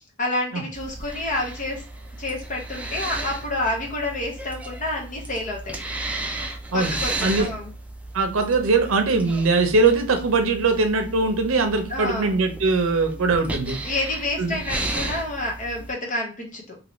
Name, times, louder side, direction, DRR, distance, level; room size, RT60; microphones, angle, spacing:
voice 1, 0.2-1.8 2.2-5.8 6.7-7.7 11.9-12.3 13.8-16.8, left 2 dB, 40° left, 0 dB, 0.7 m, -29 dB
sound 1, 0.7-15.9, right 2 dB, 5° right, 0.4 m, -34 dB
voice 2, 6.7-7.5 8.1-13.8 14.4-14.6, right 3 dB, 70° right, 6 dB, 0.7 m, -21 dB
2.8 x 2.6 x 3.1 m, 0.35 s
head